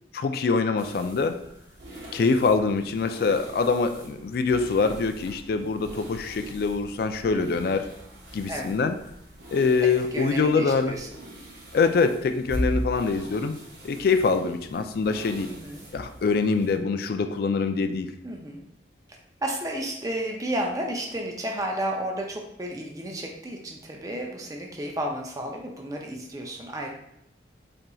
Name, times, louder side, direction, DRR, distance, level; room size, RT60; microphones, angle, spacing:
voice 1, 0.1-1.4 2.1-7.9 8.3-9.0 9.5-11.0 11.7-13.6 13.8-15.5 15.9-18.1, left 4 dB, 55° left, 8 dB, 0.3 m, -24 dB
sound 1, 0.8-16.8, equal, 75° right, 1.1 m, -40 dB
voice 2, 9.8-11.1 15.5-15.9 18.2-18.6 19.4-26.9, right 1 dB, 20° right, 1 dB, 0.4 m, -32 dB
4.3 x 3.8 x 2.3 m, 0.79 s
head